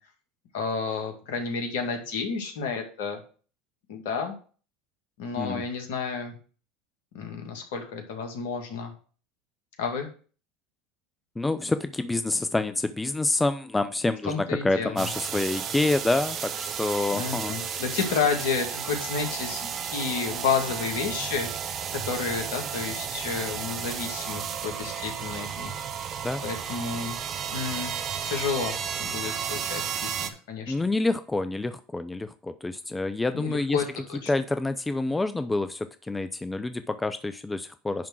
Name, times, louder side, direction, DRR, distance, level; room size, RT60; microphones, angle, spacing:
voice 1, 0.5-3.2 3.9-4.4 5.2-6.3 7.1-8.9 9.8-10.1 14.3-15.1 17.1-25.7 26.4-27.2 27.5-27.9 28.2-30.7 33.3-34.3, left 5 dB, 70° left, 3 dB, 2.2 m, -31 dB
voice 2, 11.4-17.8 26.2-26.4 30.7-33.8 34.3-38.1, left 2 dB, 15° left, 11 dB, 0.6 m, -27 dB
sound 1, 15.0-30.3, right 8 dB, 45° right, 1.2 m, -33 dB
10.5 x 3.7 x 6.2 m, 0.40 s
hypercardioid pair, 80°, 0 cm